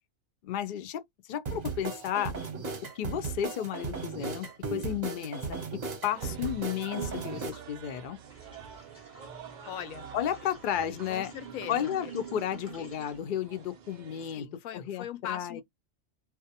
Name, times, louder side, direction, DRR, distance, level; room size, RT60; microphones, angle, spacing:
voice 1, 0.4-1.0 1.3-2.3 3.0-5.6 6.0-8.2 10.1-11.3 11.7-14.5 14.7-15.6, left 10 dB, 65° left, 0.5 m, -33 dB
sound 1, 1.5-7.5, right 4 dB, 40° right, 0.7 m, -36 dB
sound 2, 6.1-14.4, right 8 dB, 80° right, 0.4 m, -46 dB
sound 3, 8.2-13.2, right 2 dB, 15° left, 0.7 m, -54 dB
voice 2, 9.7-10.1 11.1-12.1 12.8-12.9 14.3-15.6, left 9 dB, 90° left, 1.0 m, -40 dB
2.4 x 2.1 x 2.7 m
omnidirectional pair, 1.4 m